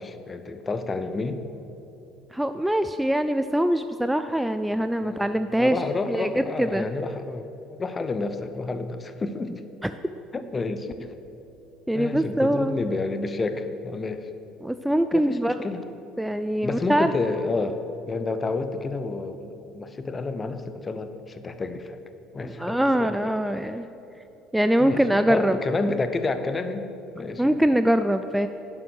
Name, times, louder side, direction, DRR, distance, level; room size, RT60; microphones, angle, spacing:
voice 1, 0.0-1.4 5.0-7.5 7.8-9.6 10.3-11.1 11.9-14.3 15.1-15.8 16.6-22.0 22.3-23.3 23.6-23.8 24.8-27.6, left 3 dB, 25° left, 9 dB, 0.7 m, -30 dB
voice 2, 2.3-5.8 6.1-6.8 9.8-9.9 11.9-12.8 14.6-15.5 16.2-17.1 22.4-23.9 24.5-25.6 27.4-28.5, right 1 dB, 5° right, 10 dB, 0.3 m, -23 dB
11.0 x 5.5 x 6.2 m, 3.0 s
figure-of-eight pair, 55°, 0 cm